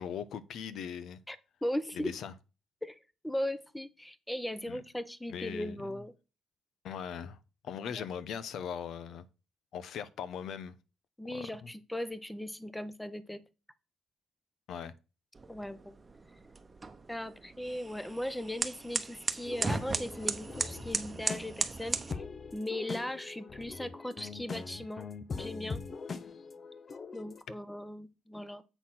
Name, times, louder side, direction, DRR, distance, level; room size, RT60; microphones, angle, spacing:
voice 1, 0.0-1.2 1.9-2.3 4.7-4.8 5.3-6.0 6.8-7.4 7.6-9.3 9.7-10.8 11.3-11.7 14.7-14.9, left 8 dB, 75° left, 0.8 m, -40 dB
voice 2, 1.3-2.1 2.8-3.0 3.2-6.1 8.0-8.1 11.2-13.4 15.5-15.9 17.1-22.2 22.5-25.1 25.4-25.8 27.1-28.6, left 1 dB, 5° left, 0.9 m, -38 dB
sound 1, 15.3-22.1, right 3 dB, 25° right, 1.0 m, -37 dB
sound 2, 19.4-27.4, left 4 dB, 40° left, 0.7 m, -42 dB
8.1 x 4.3 x 5.8 m
cardioid pair, 90°, 0 cm